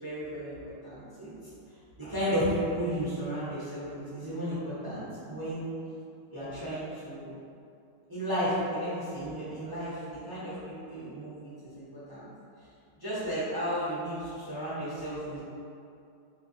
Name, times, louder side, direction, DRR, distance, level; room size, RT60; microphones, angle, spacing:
voice 1, 0.0-0.5 0.8-1.3 2.0-5.7 6.3-7.3 8.1-12.3 13.0-15.4, equal, 25° right, -11 dB, 0.5 m, -33 dB
3.2 x 2.4 x 3.9 m, 2.5 s
omnidirectional pair, 1.9 m